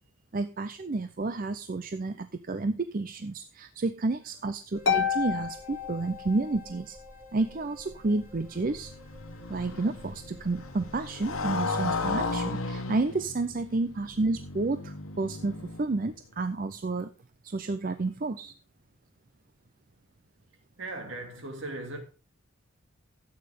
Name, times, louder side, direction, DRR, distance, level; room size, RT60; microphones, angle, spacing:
voice 1, 0.3-7.0 7.3-8.9 9.5-17.1 17.4-18.5, right 3 dB, 40° right, 0.5 m, -30 dB
sound 1, 4.7-11.7, equal, 10° right, 2.6 m, -51 dB
Harp, 4.9-6.7, left 7 dB, 60° left, 1.0 m, -29 dB
Motorcycle, 8.1-16.2, left 3 dB, 85° left, 1.2 m, -35 dB
voice 2, 20.8-22.0, right 2 dB, 65° right, 2.5 m, -38 dB
13.0 x 8.7 x 3.6 m
head